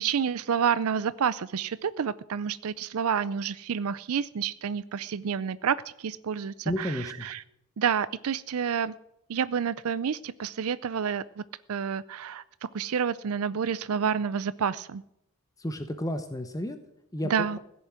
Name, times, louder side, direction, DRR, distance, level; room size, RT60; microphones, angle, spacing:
voice 1, 0.0-7.4 7.8-8.9 9.3-11.4 11.7-12.4 12.7-15.0 17.2-17.6, right 7 dB, 75° right, 17 dB, 0.5 m, -29 dB
voice 2, 6.7-7.3 15.6-16.8 17.1-17.6, left 1 dB, 15° left, 8 dB, 0.9 m, -32 dB
16.5 x 7.1 x 9.3 m, 0.81 s
head